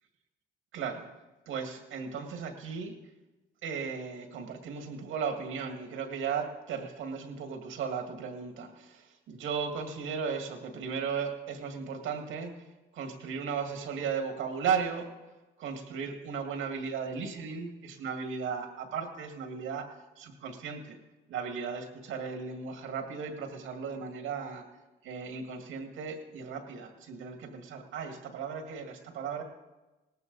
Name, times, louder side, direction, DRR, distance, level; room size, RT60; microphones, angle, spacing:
voice 1, 0.7-1.1 1.5-3.0 3.6-12.5 12.9-15.1 15.6-21.0 21.3-24.6 25.0-29.4, right 6 dB, 85° right, 5 dB, 2.0 m, -36 dB
18.0 x 14.0 x 4.0 m, 1.1 s
cardioid pair, 90°, 20 cm